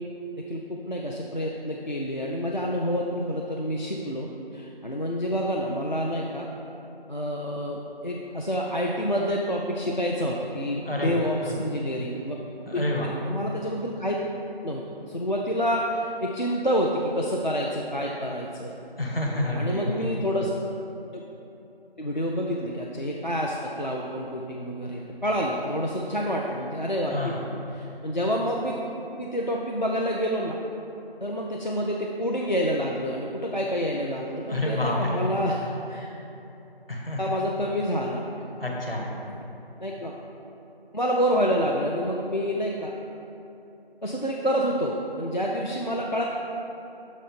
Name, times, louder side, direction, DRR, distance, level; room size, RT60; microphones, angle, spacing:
voice 1, 0.5-6.5 7.1-12.4 12.7-14.2 14.6-18.8 19.5-20.5 21.1-21.2 22.0-27.3 27.7-28.8 29.2-30.6 31.2-36.1 37.2-38.2 39.3-39.4 39.8-40.1 40.9-42.9 44.0-46.2, equal, 50° left, -2 dB, 0.4 m, -28 dB
voice 2, 10.8-11.6 12.7-13.1 19.0-20.1 27.1-27.4 34.5-35.4 36.9-37.2 38.6-39.1, left 1 dB, 70° left, -1 dB, 1.4 m, -28 dB
6.4 x 4.1 x 5.1 m, 2.9 s
figure-of-eight pair, 180°, 30 cm